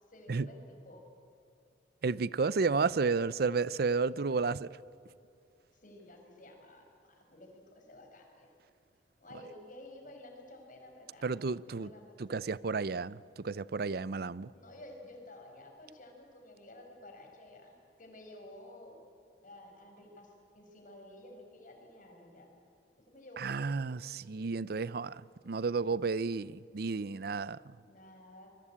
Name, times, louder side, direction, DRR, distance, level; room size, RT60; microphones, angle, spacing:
voice 1, 0.1-1.0 5.7-8.5 9.2-11.3 11.7-12.6 14.5-19.0 19.4-22.5 23.0-23.8 27.9-28.5, left 1 dB, 50° left, 5.5 m, -52 dB
voice 2, 2.0-4.8 11.2-11.9 12.2-14.5 23.4-27.7, right 4 dB, 60° right, 0.5 m, -32 dB
26.0 x 21.5 x 8.7 m
head